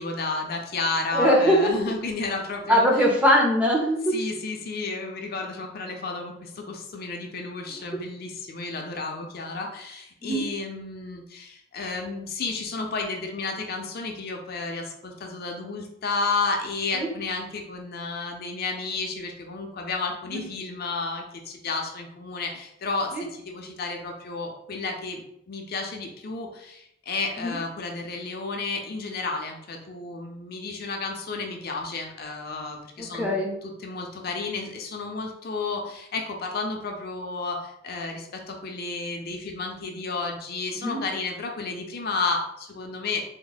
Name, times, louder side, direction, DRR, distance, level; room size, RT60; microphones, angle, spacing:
voice 1, 0.0-3.0 4.1-43.2, left 3 dB, 55° left, 2 dB, 0.5 m, -32 dB
voice 2, 1.1-1.7 2.7-4.2 10.2-10.4 16.9-17.1 20.3-20.4 23.1-23.2 27.4-27.5 33.0-33.5 40.8-41.0, equal, 5° right, -1 dB, 0.6 m, -21 dB
3.5 x 2.1 x 3.9 m, 0.76 s
head